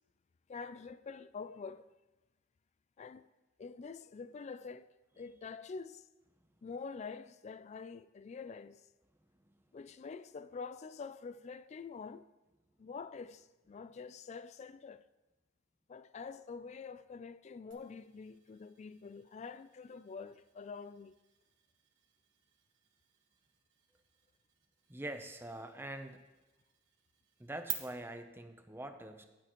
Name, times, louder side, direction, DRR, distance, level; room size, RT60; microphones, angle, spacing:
voice 1, 0.5-1.9 3.0-3.3 3.6-4.9 5.2-6.1 6.6-8.8 9.7-12.3 12.8-15.0 15.9-21.2, left 5 dB, 35° left, 0.3 m, -46 dB
sound 1, 17.7-27.7, right 14 dB, 75° right, 1.3 m, -52 dB
voice 2, 24.9-26.2 27.4-29.2, right 1 dB, 10° right, 0.7 m, -44 dB
12.5 x 10.5 x 3.1 m
head